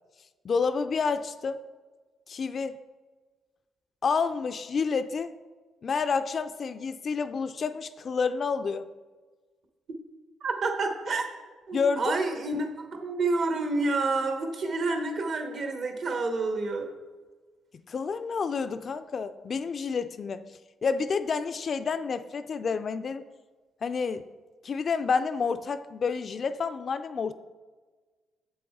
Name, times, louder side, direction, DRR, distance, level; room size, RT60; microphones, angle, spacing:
voice 1, 0.4-1.6 2.3-2.8 4.0-5.3 5.8-8.9 11.7-12.1 17.9-20.4 20.8-23.2 23.8-24.3 24.6-27.3, left 5 dB, 45° left, 11 dB, 0.3 m, -29 dB
voice 2, 10.4-11.2 11.7-12.7 13.0-16.9, right 3 dB, 60° right, 4 dB, 1.1 m, -28 dB
7.4 x 6.9 x 3.6 m, 1.4 s
cardioid pair, 90°, 0 cm